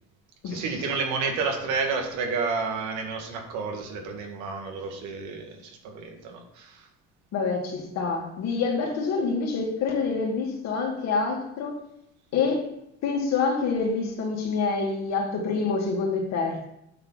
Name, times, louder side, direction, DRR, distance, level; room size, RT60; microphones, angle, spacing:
voice 1, 0.4-6.9, right 4 dB, 80° right, 3 dB, 2.0 m, -30 dB
voice 2, 7.3-11.7 12.3-12.6 13.0-16.7, left 4 dB, 65° left, 0 dB, 2.6 m, -26 dB
9.2 x 4.7 x 5.7 m, 0.82 s
cardioid pair, 110°, 29 cm